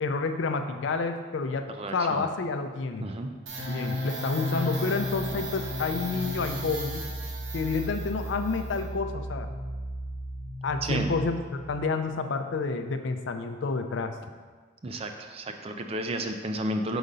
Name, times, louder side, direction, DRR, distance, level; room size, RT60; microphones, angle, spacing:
voice 1, 0.0-3.1 3.7-7.1 7.5-9.5 10.6-14.2, left 4 dB, 65° left, 7 dB, 0.4 m, -29 dB
voice 2, 1.7-2.3 3.0-3.3 10.8-11.1 14.8-17.0, right 1 dB, 30° right, 6 dB, 0.4 m, -32 dB
sound 1, 3.5-11.9, equal, 70° right, 1.0 m, -34 dB
4.9 x 3.9 x 5.4 m, 1.5 s
head